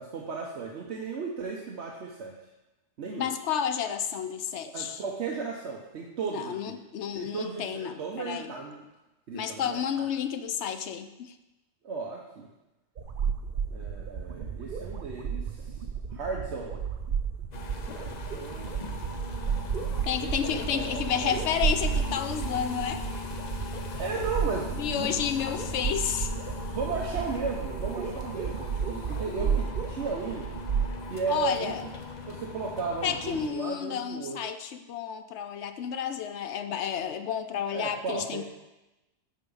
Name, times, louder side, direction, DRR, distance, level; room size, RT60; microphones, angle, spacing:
voice 1, 0.0-2.4 3.0-3.3 4.7-6.8 7.1-8.8 9.3-10.1 11.8-12.5 13.7-15.7 16.1-16.8 18.0-19.1 20.2-21.4 24.0-25.1 26.7-30.5 31.1-31.9 32.2-34.4 37.7-38.4, right 5 dB, 70° right, -1 dB, 1.1 m, -35 dB
voice 2, 3.2-5.0 6.3-8.5 9.3-11.3 20.1-23.0 24.8-26.3 29.3-29.6 31.3-31.8 33.0-38.4, left 8 dB, 70° left, 9 dB, 0.9 m, -31 dB
sound 1, 13.0-30.9, right 7 dB, 55° right, 0.8 m, -33 dB
sound 2, 17.5-33.5, left 4 dB, 45° left, 0.7 m, -39 dB
8.9 x 4.7 x 5.5 m, 1.0 s
omnidirectional pair, 1.2 m